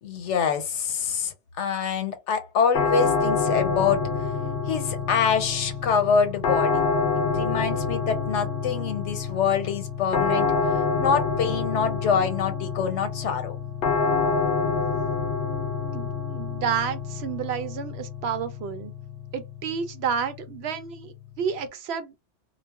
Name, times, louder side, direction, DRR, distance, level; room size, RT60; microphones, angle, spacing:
voice 1, 0.0-4.1 4.6-6.8 7.1-10.5 11.0-13.6, left 6 dB, 85° left, 1.0 m, -25 dB
sound 1, 2.7-21.6, left 4 dB, 60° left, 0.7 m, -27 dB
voice 2, 15.9-18.9 19.3-22.1, right 7 dB, 70° right, 0.8 m, -30 dB
2.3 x 2.0 x 3.4 m
omnidirectional pair, 1.2 m